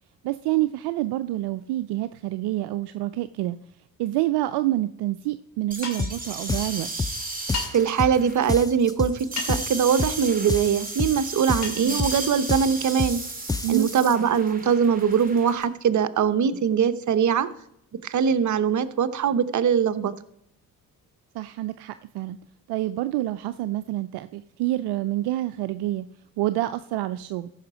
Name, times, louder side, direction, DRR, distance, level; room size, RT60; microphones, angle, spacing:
voice 1, 0.2-3.6 4.0-6.9 11.7-12.0 13.6-13.9 21.3-22.4 22.7-26.1 26.4-27.5, right 15 dB, 65° right, 13 dB, 0.5 m, -27 dB
sound 1, 5.7-15.6, right 3 dB, 20° right, 2.2 m, -35 dB
sound 2, 5.8-6.2 7.5-7.7 9.4-9.7 11.6-11.8, left 4 dB, 40° left, 3.1 m, -32 dB
sound 3, 6.0-6.2 6.5-7.2 7.5-8.2 8.5-9.2 9.5-10.2 10.5-11.2 11.5-12.2 12.5-13.2 13.5-13.9, left 3 dB, 10° left, 0.5 m, -28 dB
voice 2, 7.7-13.2 13.7-17.5 18.0-20.1, right 7 dB, 45° right, 12 dB, 0.9 m, -22 dB
14.0 x 5.8 x 4.8 m, 0.74 s
hypercardioid pair, 50°, 42 cm